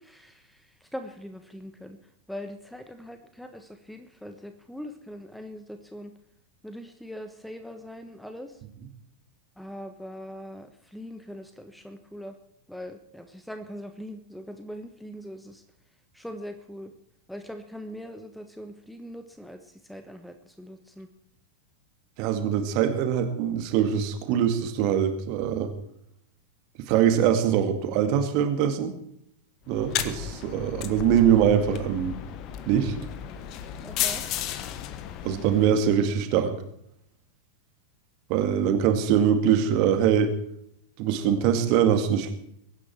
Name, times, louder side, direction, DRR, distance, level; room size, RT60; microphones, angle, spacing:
voice 1, 0.0-2.0 2.3-6.1 6.6-8.6 9.6-12.4 12.7-15.6 16.1-16.9 17.3-19.6 19.9-21.1 33.8-34.2, equal, ahead, 7 dB, 1.2 m, -41 dB
voice 2, 22.2-25.7 26.9-28.9 29.7-32.2 32.7-32.9 35.2-36.5 38.3-40.3 41.0-42.3, right 9 dB, 45° right, 7 dB, 2.1 m, -23 dB
sound 1, 29.7-36.1, left 10 dB, 40° left, 1.3 m, -34 dB
23.5 x 9.9 x 4.5 m, 0.73 s
figure-of-eight pair, 90°, 0 cm